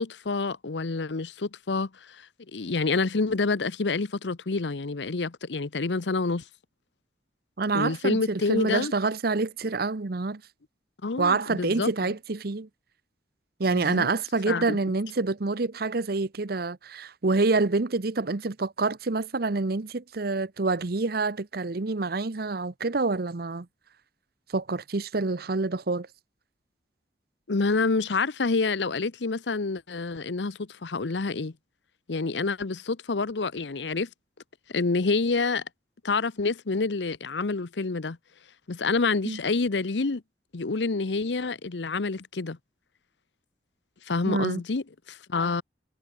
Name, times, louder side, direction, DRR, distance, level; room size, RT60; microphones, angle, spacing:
voice 1, 0.0-6.4 7.7-8.9 11.0-12.1 13.7-14.1 14.5-14.8 27.5-31.5 32.1-34.1 34.7-35.6 36.0-38.2 38.7-40.2 40.5-42.6 44.1-45.6, left 3 dB, 85° left, 0.8 m, -28 dB
voice 2, 7.6-10.4 11.2-12.7 13.6-23.7 24.5-26.1 39.2-39.4 44.3-44.6, right 3 dB, 60° right, 0.9 m, -27 dB
head